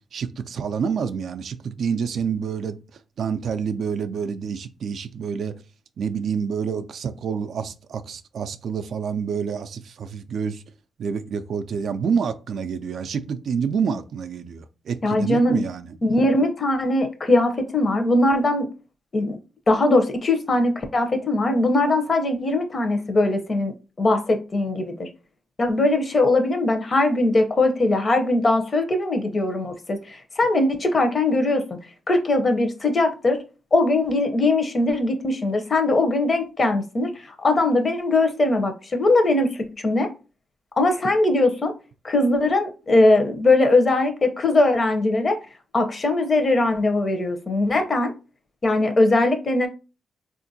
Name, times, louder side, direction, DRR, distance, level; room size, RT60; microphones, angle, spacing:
voice 1, 0.1-2.8 3.2-5.5 6.0-10.6 11.0-16.0, right 6 dB, 70° right, 0.3 m, -27 dB
voice 2, 15.0-15.6 16.0-18.7 19.1-19.4 19.7-23.7 24.0-25.1 25.6-31.6 32.1-33.4 33.7-37.1 37.4-40.1 40.8-41.7 42.0-45.4 45.7-48.1 48.6-49.7, left 2 dB, 40° left, 0.7 m, -20 dB
3.6 x 2.5 x 2.6 m
cardioid pair, 80°, 0 cm